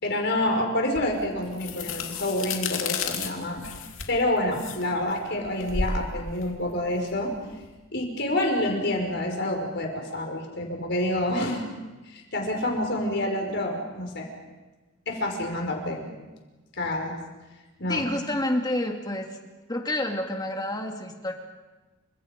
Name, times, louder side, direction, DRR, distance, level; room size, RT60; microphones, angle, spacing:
voice 1, 0.0-3.6 4.1-7.3 7.9-11.6 12.1-14.3 15.1-16.1 16.8-17.2 17.8-18.1, left 1 dB, 55° left, 2 dB, 5.3 m, -28 dB
sound 1, 1.0-7.7, left 4 dB, 75° left, 2.8 m, -33 dB
voice 2, 17.9-19.3 19.7-21.3, left 1 dB, 20° left, 3 dB, 2.5 m, -28 dB
29.5 x 26.5 x 5.3 m, 1.2 s
head